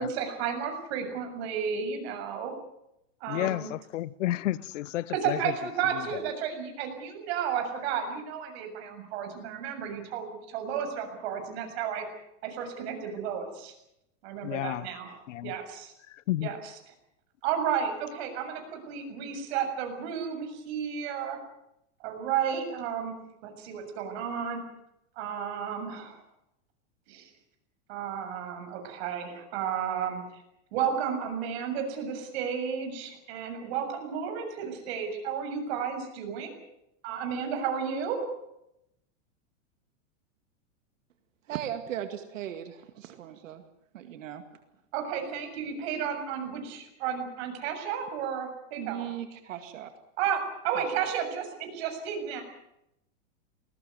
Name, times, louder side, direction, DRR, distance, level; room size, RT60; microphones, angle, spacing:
voice 1, 0.0-2.5 3.2-3.7 5.2-12.0 12.4-13.7 14.2-15.2 15.4-15.9 16.4-16.6 17.4-21.4 22.0-24.6 25.2-26.2 27.1-27.3 27.9-30.4 30.7-36.6 37.0-38.4 44.9-49.0 50.2-52.4, right 7 dB, 55° right, 7.1 m, -32 dB
voice 2, 3.3-5.5 5.9-6.2 14.4-14.9 15.3-15.5 16.1-16.5, left 15 dB, 70° left, 1.0 m, -31 dB
voice 3, 41.5-43.6 43.9-44.4 48.8-49.9 50.7-51.1, right 11 dB, 75° right, 2.2 m, -38 dB
20.5 x 19.5 x 9.4 m
supercardioid pair, 145°, 38 cm